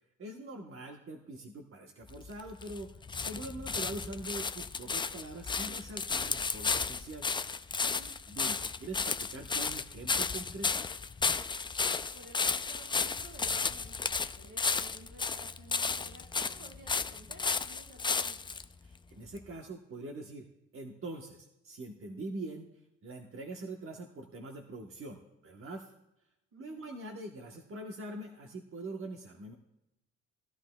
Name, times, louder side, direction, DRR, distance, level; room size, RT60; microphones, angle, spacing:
voice 1, 0.2-2.9 3.2-7.3 8.3-10.8 18.8-20.5 20.7-22.7 23.0-25.9 26.6-29.5, right 2 dB, 45° right, 2 dB, 1.1 m, -43 dB
sound 1, 2.1-18.7 19.4-19.5, left 4 dB, 15° left, 0.3 m, -33 dB
voice 2, 7.8-8.1 11.8-18.5 26.5-26.9, right 1 dB, 75° right, -1 dB, 4.8 m, -54 dB
18.0 x 11.5 x 2.2 m, 0.90 s
cardioid pair, 90°, 30 cm